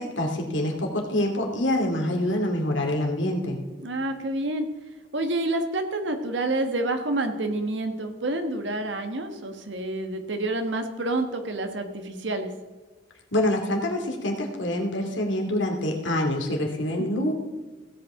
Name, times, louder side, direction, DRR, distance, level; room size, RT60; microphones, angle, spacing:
voice 1, 0.0-3.6 13.3-17.3, left 1 dB, 90° left, 1 dB, 2.5 m, -26 dB
voice 2, 3.8-4.7 5.1-12.5 17.1-17.3, right 2 dB, 75° right, 6 dB, 1.5 m, -28 dB
17.0 x 8.4 x 3.7 m, 1.3 s
head